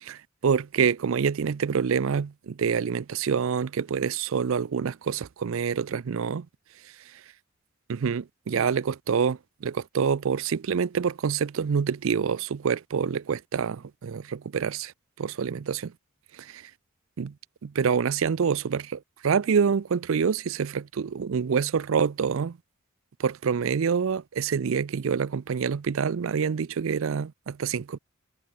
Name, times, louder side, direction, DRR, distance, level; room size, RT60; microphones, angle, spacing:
voice 1, 0.0-6.5 7.9-14.9 15.2-15.9 16.4-16.6 17.2-17.3 17.6-22.6 23.2-28.0, right 6 dB, 65° right, 0.4 m, -26 dB
head